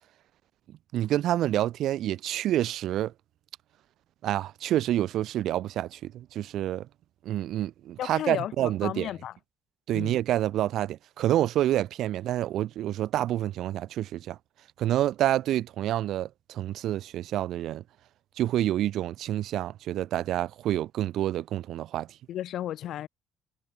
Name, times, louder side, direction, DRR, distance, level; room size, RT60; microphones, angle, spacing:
voice 1, 0.9-3.1 4.2-6.9 7.2-9.1 9.9-14.4 14.8-17.8 18.4-22.1, right 13 dB, 65° right, 0.6 m, -28 dB
voice 2, 8.0-9.3 9.9-10.2 22.3-23.1, left 12 dB, 60° left, 0.8 m, -34 dB
hypercardioid pair, 55°, 0 cm